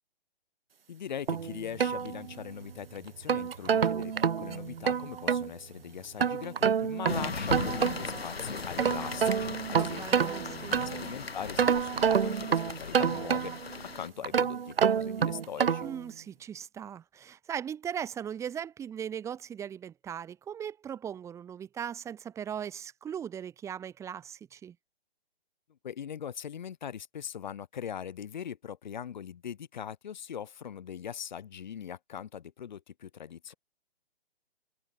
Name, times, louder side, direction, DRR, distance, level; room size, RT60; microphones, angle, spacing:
voice 1, 0.9-13.5 13.8-15.9 25.7-33.5, left 8 dB, 45° left, 1.4 m, -41 dB
sound 1, 1.3-2.6 3.1-5.5 6.2-8.2 8.6-11.1 11.6-13.7 14.2-16.0, right 7 dB, 65° right, 0.6 m, -28 dB
sound 2, 7.1-14.1, left 4 dB, 75° left, 1.7 m, -38 dB
voice 2, 9.7-10.8 15.8-24.7, right 8 dB, 10° right, 1.7 m, -39 dB
figure-of-eight pair, 130°, 31 cm